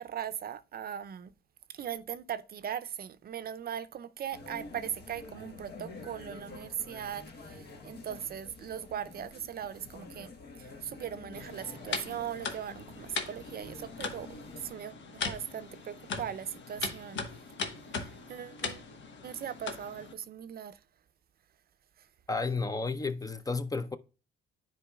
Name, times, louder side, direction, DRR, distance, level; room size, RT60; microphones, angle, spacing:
voice 1, 0.0-1.3 1.7-10.3 10.6-17.3 17.9-18.9 19.2-20.8 22.0-22.1, right 9 dB, 50° right, 0.5 m, -39 dB
sound 1, 4.3-14.7, left 3 dB, 55° left, 1.3 m, -48 dB
sound 2, 11.3-20.1, left 5 dB, 70° left, 1.3 m, -39 dB
voice 2, 22.3-24.0, left 4 dB, 20° left, 0.5 m, -32 dB
10.0 x 4.5 x 2.3 m
cardioid pair, 90°, 20 cm